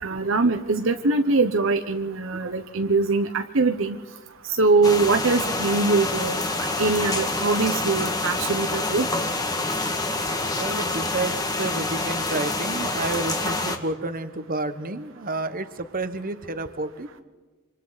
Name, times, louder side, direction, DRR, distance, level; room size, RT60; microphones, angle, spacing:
voice 1, 0.0-4.0 4.4-6.4 6.8-9.1, right 3 dB, 65° right, 6 dB, 0.9 m, -22 dB
sound 1, 4.8-13.8, left 2 dB, 20° left, 1.9 m, -27 dB
voice 2, 10.5-17.1, right 2 dB, 40° right, 10 dB, 1.3 m, -30 dB
27.5 x 25.5 x 4.1 m, 1.3 s
head